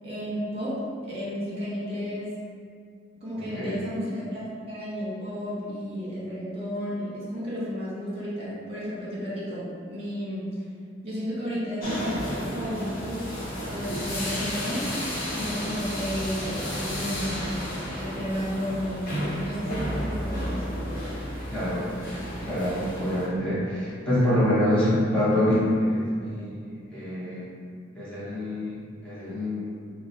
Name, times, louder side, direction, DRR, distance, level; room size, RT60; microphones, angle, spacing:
voice 1, 0.0-2.3 3.2-10.7 11.0-13.3 13.7-14.9 15.3-17.5 17.9-19.1 19.4-20.7, equal, 35° right, -8 dB, 1.4 m, -32 dB
voice 2, 3.4-3.8 21.5-21.9 22.4-26.6 26.9-27.5 27.9-29.8, left 1 dB, 5° left, -12 dB, 1.0 m, -26 dB
sound 1, 11.8-23.3, equal, 50° left, 1.0 m, -32 dB
5.6 x 2.2 x 3.0 m, 2.1 s
head